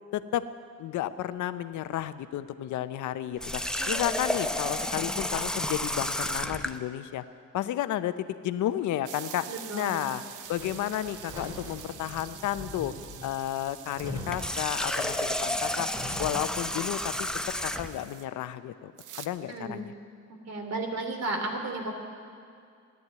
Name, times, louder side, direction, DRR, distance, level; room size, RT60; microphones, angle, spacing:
voice 1, 0.1-0.5 0.8-7.2 7.5-9.5 9.7-10.2 10.5-12.9 13.2-15.9 16.2-18.9 19.2-19.9, left 12 dB, 80° left, 13 dB, 0.7 m, -32 dB
Water tap faucet, 3.4-6.8 14.2-18.0, left 1 dB, ahead, 0.7 m, -31 dB
sound 1, 9.1-18.3 19.0-19.3, right 10 dB, 85° right, 0.9 m, -46 dB
voice 2, 9.5-10.1 19.5-19.8 20.5-21.9, right 2 dB, 60° right, 3 dB, 2.8 m, -34 dB
Sliding door / Squeak, 10.4-16.6, left 1 dB, 15° right, 3.3 m, -42 dB
14.0 x 10.5 x 9.4 m, 2.4 s
cardioid pair, 90°, 30 cm